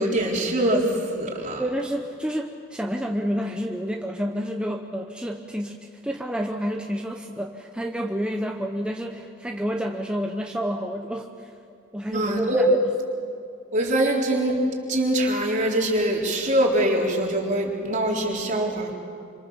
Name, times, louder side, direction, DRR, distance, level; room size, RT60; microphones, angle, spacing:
voice 1, 0.0-1.6 12.1-12.6 13.7-14.6 14.9-18.9, right 1 dB, 40° right, -1 dB, 3.8 m, -23 dB
voice 2, 1.6-11.5 11.9-12.8, equal, 5° right, 2 dB, 1.0 m, -29 dB
26.5 x 26.0 x 7.2 m, 2.4 s
head